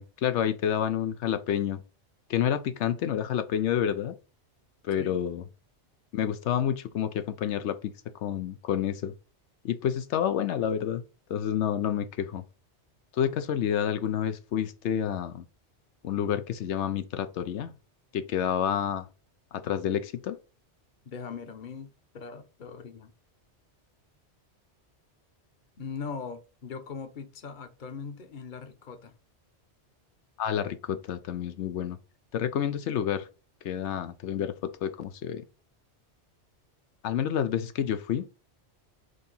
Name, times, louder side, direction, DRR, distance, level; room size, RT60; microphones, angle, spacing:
voice 1, 0.0-1.8 2.3-4.2 4.8-5.4 6.1-9.1 9.6-11.0 11.3-12.4 13.1-15.5 16.0-17.7 18.1-19.1 19.5-20.4 30.4-32.0 32.3-33.3 33.6-35.4 37.0-38.3, left 9 dB, 85° left, 0.9 m, -29 dB
voice 2, 21.0-23.1 25.8-29.1, left 5 dB, 45° left, 1.0 m, -40 dB
6.5 x 2.8 x 5.4 m
omnidirectional pair, 1.2 m